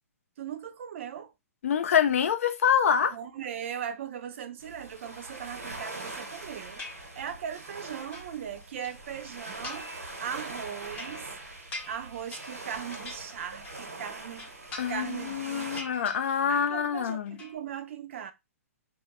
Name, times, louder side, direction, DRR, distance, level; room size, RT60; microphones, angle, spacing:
voice 1, 0.4-1.3 3.1-9.9 10.2-11.3 11.8-14.6 14.9-15.9 16.5-18.3, right 8 dB, 55° right, 0.4 m, -39 dB
voice 2, 1.6-3.2 14.8-17.4, left 8 dB, 65° left, 0.5 m, -26 dB
sound 1, 4.6-15.8, right 2 dB, 90° right, 1.0 m, -42 dB
sound 2, 6.8-7.5 7.9-8.9 9.5-10.1 10.4-13.9 14.2-15.3 15.6-16.7 16.9-17.6, left 2 dB, 20° left, 0.7 m, -44 dB
2.3 x 2.0 x 2.9 m
hypercardioid pair, 125°, 8 cm